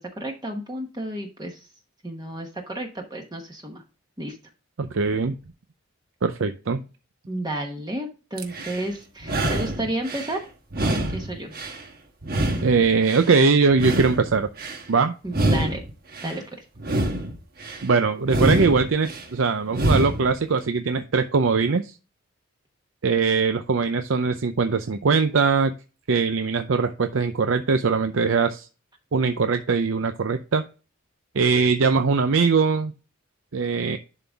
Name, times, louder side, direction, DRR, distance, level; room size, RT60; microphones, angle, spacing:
voice 1, 0.2-1.6 2.0-3.8 4.2-4.4 7.3-10.4 10.8-11.5 15.2-15.8 16.2-16.4, right 1 dB, 20° right, 2 dB, 1.0 m, -31 dB
voice 2, 4.8-5.3 6.2-6.8 12.6-14.5 14.9-15.1 17.8-21.9 23.0-25.7 26.1-28.7 29.1-30.6 31.4-32.9 33.5-34.0, right 4 dB, 75° right, 8 dB, 0.6 m, -21 dB
sound 1, 8.4-8.8 9.2-10.3 10.7-11.8 12.2-13.3 13.7-14.8 15.3-16.4 16.8-17.8 18.2-19.3 19.7-20.3, right 1 dB, 45° right, 1.3 m, -26 dB
11.0 x 3.9 x 3.4 m, 0.33 s
head